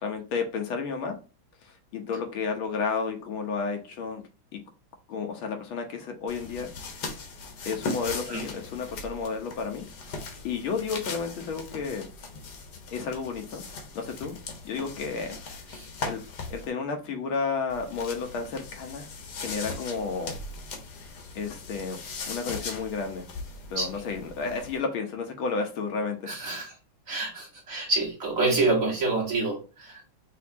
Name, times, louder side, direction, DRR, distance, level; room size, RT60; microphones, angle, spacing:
voice 1, 0.0-1.2 1.6-4.2 4.5-4.6 5.1-6.7 7.7-9.9 10.4-12.1 12.9-13.6 14.0-14.4 14.6-15.3 16.0-16.2 16.5-19.1 19.4-20.4 21.4-23.3 23.7-26.3, left 5 dB, 80° left, 1.8 m, -32 dB
sound 1, 6.3-16.7 17.7-24.8, left 3 dB, 60° left, 1.5 m, -39 dB
voice 2, 26.3-26.7 27.1-30.1, right 3 dB, 45° right, 1.7 m, -27 dB
5.8 x 2.8 x 2.7 m
omnidirectional pair, 2.2 m